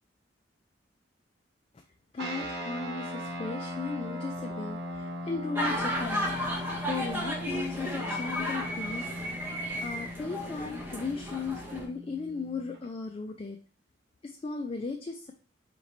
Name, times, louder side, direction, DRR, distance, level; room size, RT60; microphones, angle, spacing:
voice 1, 2.1-13.6 14.2-15.3, left 4 dB, 30° left, 3 dB, 0.3 m, -37 dB
sound 1, 2.2-12.8, left 1 dB, 65° right, 1.3 m, -39 dB
sound 2, 5.6-11.9, equal, 10° right, 0.7 m, -33 dB
5.0 x 3.0 x 2.6 m, 0.40 s
head